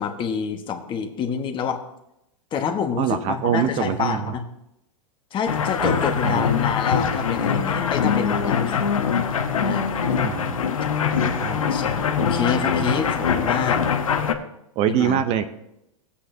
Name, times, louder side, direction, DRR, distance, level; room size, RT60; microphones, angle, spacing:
voice 1, 0.0-1.8 2.5-4.5 5.3-8.8 9.6-9.9 11.7-13.8 14.9-15.3, left 6 dB, 30° left, 5 dB, 1.3 m, -27 dB
voice 2, 3.0-4.2 5.8-6.0 6.2-6.4 10.2-10.6 11.2-11.7 12.6-13.0 14.8-15.4, right 9 dB, 40° right, 10 dB, 0.7 m, -24 dB
sound 1, 5.5-14.3, left 6 dB, 85° left, 1.0 m, -23 dB
16.5 x 8.5 x 2.7 m, 0.85 s
hypercardioid pair, 110°, 17 cm